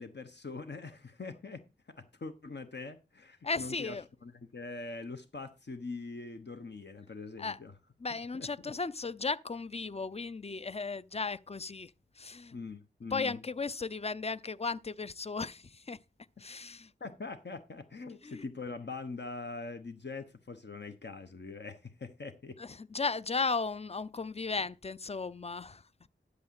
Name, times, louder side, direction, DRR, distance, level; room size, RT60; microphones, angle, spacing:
voice 1, 0.0-4.0 4.2-7.7 8.3-8.5 12.5-13.4 17.0-22.6, left 3 dB, 65° left, 1.1 m, -43 dB
voice 2, 3.4-4.1 7.4-7.6 8.0-12.6 13.1-16.0 16.4-16.9 18.2-18.4 22.6-26.1, left 4 dB, 30° left, 0.5 m, -36 dB
11.0 x 4.0 x 7.6 m
wide cardioid pair, 50°, 19 cm